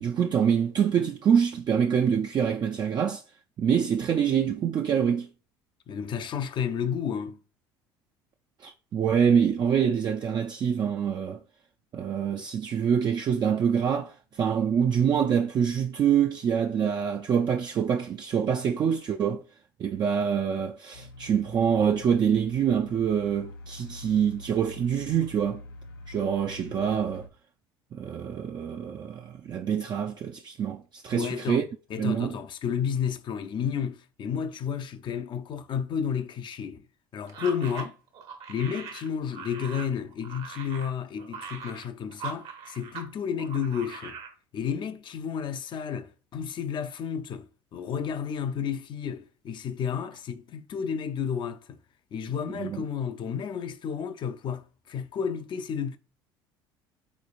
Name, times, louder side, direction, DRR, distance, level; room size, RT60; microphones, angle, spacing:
voice 1, 0.0-3.2 3.6-5.3 8.6-11.4 11.9-19.4 19.8-25.6 26.1-27.3 27.9-31.6 32.0-32.3 52.5-52.8, right 8 dB, 35° right, 0.3 m, -25 dB
voice 2, 5.9-7.4 31.1-31.6 31.9-36.8 37.1-38.0 38.5-44.2 44.5-51.8 52.1-56.0, left 7 dB, 40° left, 0.5 m, -31 dB
sound 1, 20.9-27.3, left 1 dB, 85° left, 0.6 m, -45 dB
sound 2, 37.3-43.1 43.4-44.3, right 6 dB, 60° right, 0.9 m, -41 dB
4.0 x 3.1 x 2.4 m
hypercardioid pair, 70°, 12 cm